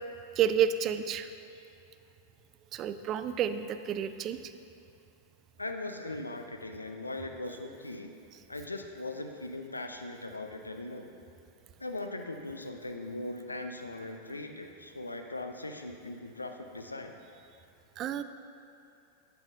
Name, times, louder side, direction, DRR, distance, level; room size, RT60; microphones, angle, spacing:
voice 1, 0.4-1.3 2.7-4.4 18.0-18.2, right 9 dB, 35° right, 11 dB, 0.3 m, -29 dB
voice 2, 5.6-8.1 8.5-11.1 11.8-17.1, left 2 dB, 80° left, 5 dB, 0.5 m, -39 dB
9.1 x 8.9 x 2.6 m, 2.6 s
figure-of-eight pair, 90°, 0 cm